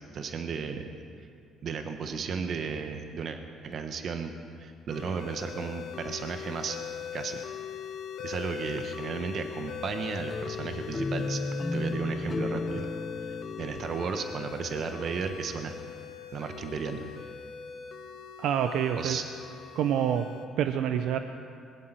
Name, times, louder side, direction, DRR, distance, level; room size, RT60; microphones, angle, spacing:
voice 1, 0.1-0.9 1.6-4.3 4.6-6.8 7.1-7.4 8.2-11.4 11.7-12.9 13.3-15.7 16.3-17.1 18.9-19.2, right 5 dB, 55° right, 6 dB, 1.3 m, -34 dB
sound 1, 4.9-20.5, left 8 dB, 65° left, 1.3 m, -41 dB
sound 2, 10.3-15.2, left 2 dB, 25° left, 0.8 m, -34 dB
voice 2, 18.4-19.2 19.7-20.3 20.6-21.2, right 9 dB, 75° right, 8 dB, 0.7 m, -27 dB
21.0 x 7.6 x 9.1 m, 2.4 s
cardioid pair, 90°, 0 cm